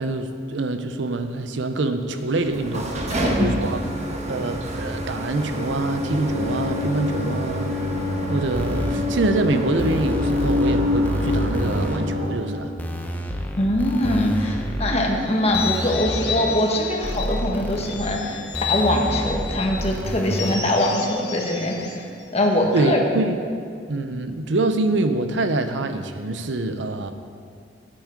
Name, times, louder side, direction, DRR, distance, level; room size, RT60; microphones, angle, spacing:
voice 1, 0.0-3.0 3.3-3.8 4.3-7.7 8.3-12.7 22.7-23.4 23.9-27.1, right 2 dB, 70° right, 8 dB, 0.7 m, -25 dB
sound 1, 2.4-12.7, left 1 dB, 40° right, 1.1 m, -26 dB
voice 2, 3.1-3.7 13.6-23.0, left 1 dB, 35° left, 1 dB, 1.3 m, -23 dB
sound 2, 8.5-8.9 9.8-10.8 11.0-12.0 12.8-15.0 15.5-16.6 17.0-18.0 18.5-20.6, equal, 10° left, 0.8 m, -29 dB
sound 3, 15.3-17.4 17.8-19.7 20.3-22.8, left 7 dB, 65° left, 1.4 m, -32 dB
9.4 x 8.6 x 5.1 m, 2.2 s
head